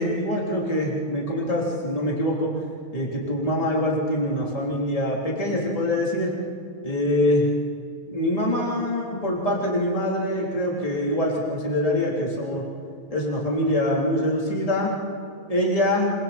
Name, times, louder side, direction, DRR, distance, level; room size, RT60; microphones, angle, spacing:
voice 1, 0.0-2.5 2.9-6.3 6.8-7.5 8.1-12.6 13.1-14.9 15.5-16.1, left 1 dB, 15° left, -3 dB, 3.6 m, -24 dB
27.5 x 25.0 x 4.4 m, 2.4 s
omnidirectional pair, 2.4 m